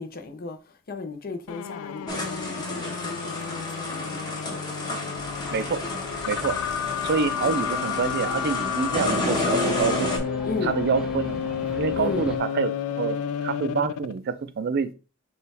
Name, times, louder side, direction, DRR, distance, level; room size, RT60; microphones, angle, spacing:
voice 1, 0.0-4.6 10.4-10.7 11.9-12.3, left 3 dB, 45° left, 0.7 m, -35 dB
sound 1, 1.5-14.2, left 8 dB, 90° left, 0.3 m, -31 dB
sound 2, 2.1-10.2, left 2 dB, 20° left, 1.1 m, -31 dB
sound 3, 5.2-12.4, equal, 5° right, 0.6 m, -38 dB
voice 2, 5.5-5.8 6.3-6.6 7.0-10.1 10.6-11.4 11.8-14.9, right 5 dB, 50° right, 0.4 m, -27 dB
6.6 x 2.3 x 3.3 m
head